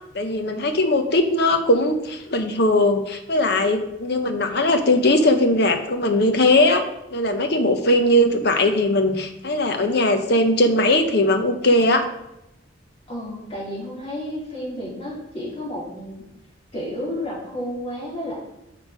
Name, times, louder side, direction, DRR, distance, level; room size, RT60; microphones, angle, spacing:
voice 1, 0.1-6.8 7.1-12.1, left 1 dB, 60° left, 6 dB, 0.8 m, -19 dB
voice 2, 13.1-16.2 16.7-18.4, left 1 dB, 30° left, -7 dB, 3.2 m, -31 dB
6.3 x 5.9 x 5.0 m, 0.88 s
head